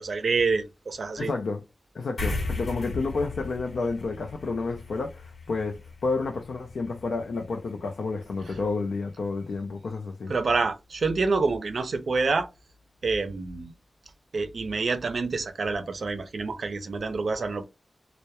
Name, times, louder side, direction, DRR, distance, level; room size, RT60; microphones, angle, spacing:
voice 1, 0.0-1.3 10.3-12.5 13.0-13.7 14.3-17.7, right 4 dB, 75° right, 0.4 m, -27 dB
voice 2, 1.2-1.6 1.9-10.3, left 3 dB, 90° left, 0.4 m, -30 dB
sound 1, 2.2-9.0, left 3 dB, 75° left, 0.9 m, -37 dB
2.2 x 2.0 x 2.8 m
wide cardioid pair, 80°, 0 cm